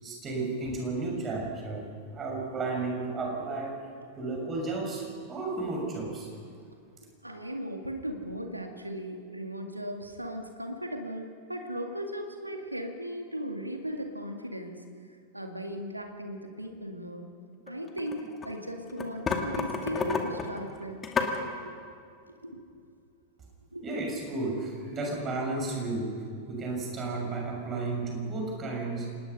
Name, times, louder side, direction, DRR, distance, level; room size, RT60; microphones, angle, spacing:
voice 1, 0.0-3.7 4.2-6.3 23.8-26.1 26.5-29.1, right 3 dB, 25° right, 0 dB, 6.5 m, -33 dB
voice 2, 7.2-14.8 15.3-17.3 17.7-21.0 21.6-21.8 22.3-22.6 23.7-23.8 28.3-28.4, equal, 85° right, 4 dB, 2.1 m, -37 dB
sound 1, 17.7-18.5 18.9-21.4, left 5 dB, 20° left, 2.4 m, -31 dB
26.0 x 19.5 x 5.6 m, 2.3 s
figure-of-eight pair, 90°, 0 cm